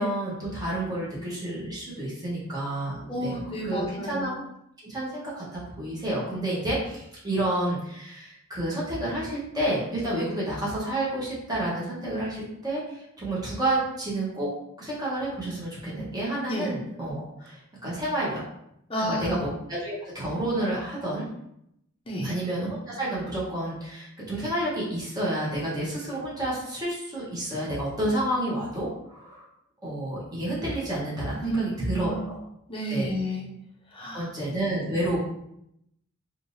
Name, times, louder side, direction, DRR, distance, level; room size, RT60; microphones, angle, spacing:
voice 1, 0.0-3.8 4.1-4.3 4.8-14.5 14.8-18.4 19.0-21.2 22.2-29.4 29.8-32.3 32.9-33.1 34.1-35.2, right 1 dB, 20° right, -7 dB, 1.0 m, -30 dB
voice 2, 3.0-4.3 6.3-6.4 16.5-16.7 18.9-19.4 22.1-22.3 31.4-32.3 32.7-33.5 33.9-34.3, equal, 25° left, -2 dB, 0.5 m, -31 dB
3.3 x 2.6 x 2.6 m, 0.78 s
head